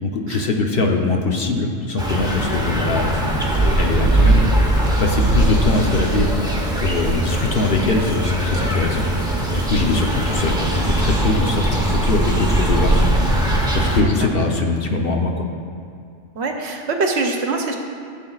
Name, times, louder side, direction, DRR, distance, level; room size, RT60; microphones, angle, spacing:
voice 1, 0.0-4.4 5.0-6.3 6.8-9.4 9.7-13.0 13.7-15.5, left 3 dB, 55° left, 1 dB, 1.0 m, -22 dB
sound 1, 2.0-14.0, right 1 dB, 5° right, 0.8 m, -20 dB
voice 2, 9.8-10.1 13.9-14.3 16.3-17.8, right 3 dB, 65° right, 2 dB, 1.1 m, -25 dB
15.0 x 7.5 x 2.4 m, 2.4 s
omnidirectional pair, 1.2 m